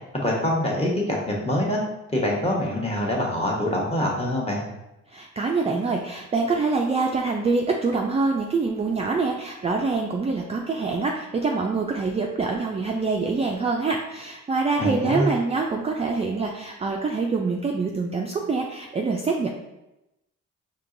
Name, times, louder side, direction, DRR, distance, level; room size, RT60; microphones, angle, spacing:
voice 1, 0.2-1.8 2.1-4.6 14.8-15.3, left 1 dB, 20° left, -2 dB, 1.1 m, -24 dB
voice 2, 5.1-19.5, right 4 dB, 20° right, 0 dB, 0.3 m, -25 dB
4.5 x 2.9 x 2.6 m, 0.93 s
cardioid pair, 90°, 30 cm